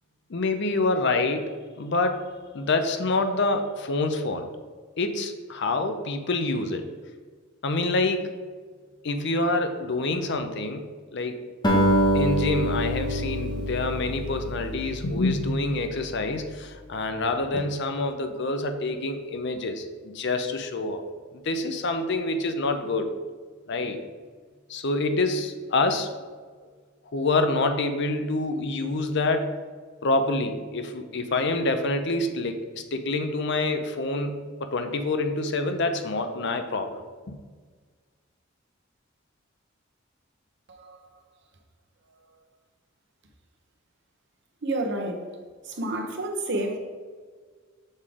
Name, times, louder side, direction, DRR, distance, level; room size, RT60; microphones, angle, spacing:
voice 1, 0.3-1.5 1.8-2.2 2.5-4.4 5.0-6.8 7.6-8.3 9.0-10.8 11.1-11.3 12.1-21.0 21.4-23.1 23.7-24.0 24.7-26.1 27.1-29.5 30.0-37.3, left 2 dB, 60° left, 0.6 m, -26 dB
Acoustic guitar, 11.6-16.1, equal, 20° left, 1.0 m, -26 dB
voice 2, 44.6-45.2 45.7-46.8, right 1 dB, 55° right, 0.8 m, -29 dB
6.4 x 3.8 x 4.8 m
head